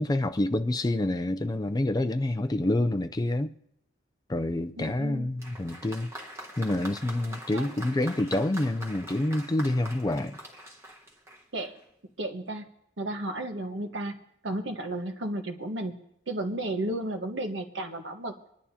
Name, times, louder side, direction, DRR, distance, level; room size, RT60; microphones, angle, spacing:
voice 1, 0.0-3.5 4.3-6.1 6.6-10.4, left 1 dB, 20° left, 0.4 m, -27 dB
voice 2, 4.8-5.3 7.5-8.0 11.5-11.8 12.2-12.7 13.0-18.4, right 1 dB, 65° right, 1.3 m, -33 dB
Applause, 5.4-11.8, right 1 dB, 15° right, 1.3 m, -44 dB
25.5 x 11.0 x 2.8 m
head